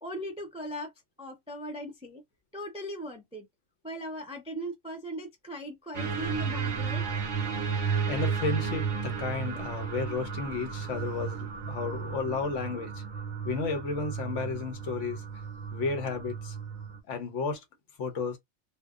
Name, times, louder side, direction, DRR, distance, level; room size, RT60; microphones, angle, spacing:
voice 1, 0.0-0.9 1.2-2.2 2.5-3.5 3.8-7.1, equal, 10° right, 0.3 m, -38 dB
sound 1, 5.9-17.0, right 6 dB, 50° right, 0.7 m, -33 dB
voice 2, 8.1-12.9 13.4-15.2 15.7-16.5 17.1-17.6 18.0-18.4, left 4 dB, 70° left, 1.1 m, -32 dB
2.8 x 2.1 x 2.3 m
omnidirectional pair, 1.3 m